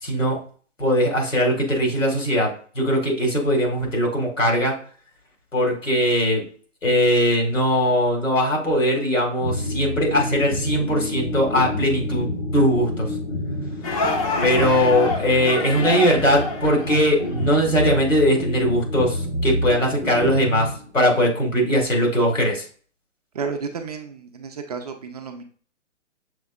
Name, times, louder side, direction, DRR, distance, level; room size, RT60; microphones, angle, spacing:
voice 1, 0.0-0.4 0.8-4.8 5.5-6.4 6.8-12.3 12.5-13.1 14.4-22.6, equal, 90° left, 0 dB, 2.0 m, -20 dB
sound 1, 9.4-21.3, left 1 dB, 65° left, 1.3 m, -29 dB
sound 2, 13.8-17.5, left 3 dB, 30° left, 0.7 m, -27 dB
voice 2, 23.3-25.4, right 5 dB, 35° right, 5 dB, 0.5 m, -32 dB
6.3 x 3.4 x 2.3 m, 0.43 s
figure-of-eight pair, 130°, 38 cm